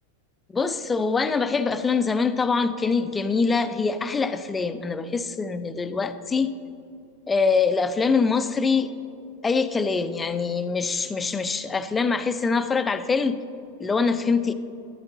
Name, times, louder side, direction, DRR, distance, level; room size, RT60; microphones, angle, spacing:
voice 1, 0.5-6.5 7.3-8.9 9.4-13.4 13.8-14.5, left 4 dB, 15° left, 11 dB, 0.4 m, -24 dB
12.5 x 11.5 x 2.7 m, 2.7 s
figure-of-eight pair, 90°, 0 cm